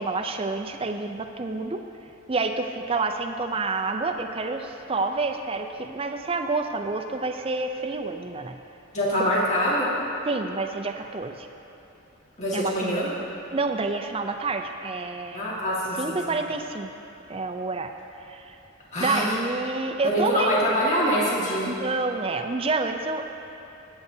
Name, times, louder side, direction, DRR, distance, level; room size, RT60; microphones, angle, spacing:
voice 1, 0.0-1.8 2.3-8.6 10.3-11.5 12.5-13.1 13.5-15.6 16.0-16.9 17.3-17.9 18.3-18.6 19.0-20.6 21.7-23.2, right 3 dB, 25° right, 5 dB, 0.5 m, -28 dB
voice 2, 8.9-9.9 12.4-13.1 15.3-16.2 18.9-19.3 20.0-21.7, equal, 35° left, -6 dB, 1.9 m, -24 dB
21.5 x 8.1 x 2.8 m, 3.0 s
head